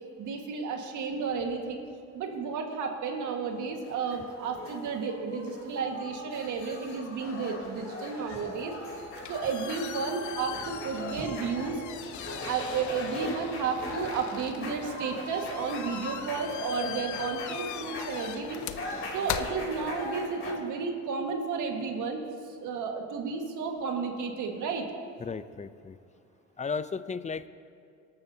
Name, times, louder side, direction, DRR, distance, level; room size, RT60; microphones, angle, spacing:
voice 1, 0.2-1.8 2.1-8.7 9.3-11.8 12.5-18.8 19.1-22.2 22.6-24.8, right 5 dB, 80° right, 3 dB, 1.7 m, -32 dB
sound 1, 3.5-20.5, left 2 dB, 45° left, 3.5 m, -40 dB
sound 2, 8.9-20.4, left 11 dB, 70° left, 0.6 m, -41 dB
voice 2, 25.2-26.0 26.6-27.5, left 5 dB, 25° left, 14 dB, 0.5 m, -34 dB
23.0 x 12.5 x 2.8 m, 2.4 s
cardioid pair, 90°, 30 cm